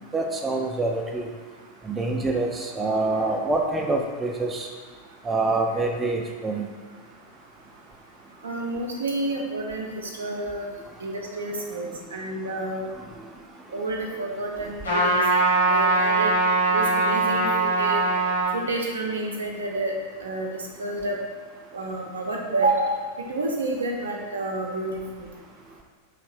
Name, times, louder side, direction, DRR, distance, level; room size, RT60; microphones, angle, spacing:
voice 1, 0.1-1.3 1.8-4.7 5.2-6.7, right 2 dB, 15° right, 1 dB, 0.3 m, -26 dB
voice 2, 8.4-10.7 11.0-12.9 13.7-15.2 15.7-16.3 16.7-17.5 17.8-18.0 18.5-19.9 20.2-20.5 20.8-21.2 21.7-22.9 23.3-24.9 25.2-25.3, right 2 dB, 70° right, 0 dB, 0.5 m, -29 dB
Trumpet, 14.8-18.5, right 3 dB, 80° left, 0.9 m, -21 dB
3.2 x 2.6 x 3.3 m, 1.5 s
figure-of-eight pair, 90°, 0 cm